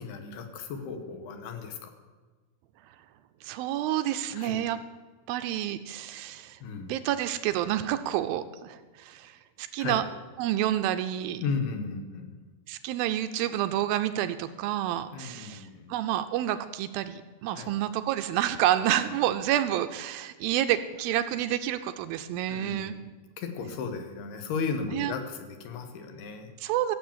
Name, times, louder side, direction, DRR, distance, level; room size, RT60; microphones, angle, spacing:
voice 1, 0.0-1.9 4.3-4.6 6.6-6.9 9.8-10.0 11.4-12.4 15.1-15.9 17.5-17.7 18.8-18.9 22.5-23.1 23.4-26.5, left 5 dB, 85° left, 6 dB, 3.3 m, -35 dB
voice 2, 3.4-4.8 5.3-10.0 10.4-11.4 12.7-22.9 24.9-25.1 26.6-27.0, right 12 dB, 80° right, 10 dB, 2.3 m, -29 dB
15.0 x 7.6 x 7.3 m, 1.3 s
omnidirectional pair, 4.4 m